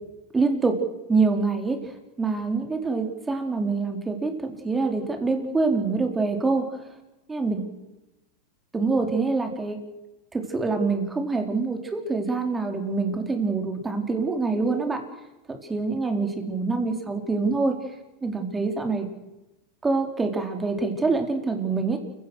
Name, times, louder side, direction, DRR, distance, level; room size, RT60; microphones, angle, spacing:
voice 1, 0.3-0.7 1.1-1.8 2.2-6.7 7.3-7.6 8.7-9.8 10.3-15.0 15.5-17.8 18.2-19.1 19.8-22.0, right 3 dB, 15° right, 4 dB, 4.3 m, -25 dB
29.0 x 17.0 x 6.5 m, 1.0 s
hypercardioid pair, 100°, 0 cm